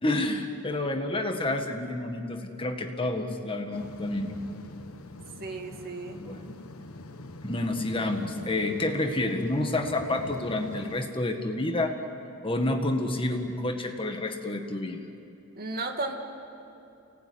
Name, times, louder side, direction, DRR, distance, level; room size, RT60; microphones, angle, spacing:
voice 1, 0.0-4.3 6.2-6.5 7.4-11.9 12.4-15.0, left 2 dB, 25° left, 5 dB, 1.7 m, -29 dB
sound 1, 3.7-11.1, left 1 dB, 75° left, 1.4 m, -44 dB
voice 2, 5.4-6.2 15.6-16.2, right 3 dB, 45° right, 2 dB, 2.3 m, -34 dB
29.5 x 18.5 x 9.7 m, 2.7 s
head